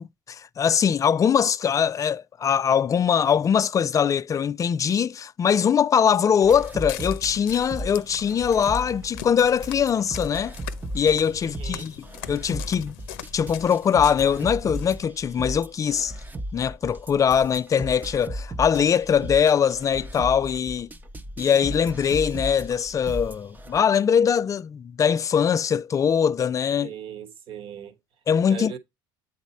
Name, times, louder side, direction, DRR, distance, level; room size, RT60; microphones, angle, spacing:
voice 1, 0.0-10.6 10.9-12.9 13.3-16.1 16.5-20.9 21.4-26.9 28.3-28.8, left 7 dB, 30° left, 0.4 m, -22 dB
Walk footsteps, 6.4-15.0, left 13 dB, 85° left, 0.6 m, -42 dB
sound 1, 6.4-23.8, right 1 dB, 15° right, 0.7 m, -36 dB
voice 2, 11.6-11.9 26.8-27.9 28.5-28.8, right 8 dB, 50° right, 1.2 m, -38 dB
8.1 x 4.1 x 4.1 m
supercardioid pair, 100°, 11 cm